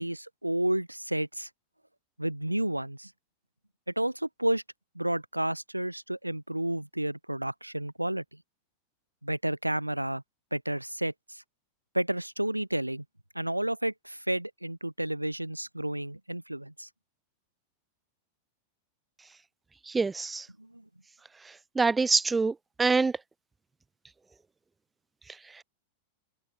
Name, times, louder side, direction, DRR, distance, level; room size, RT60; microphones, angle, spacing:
voice 1, 0.0-1.5 2.2-3.1 4.0-4.6 5.0-8.2 9.2-10.2 10.5-11.4 11.9-13.0 13.4-16.9 20.6-20.8, right 1 dB, 85° right, 3.5 m, -31 dB
voice 2, 19.9-20.4 21.8-22.5 22.8-23.1, right 4 dB, 10° right, 0.8 m, -24 dB
figure-of-eight pair, 90°, 0 cm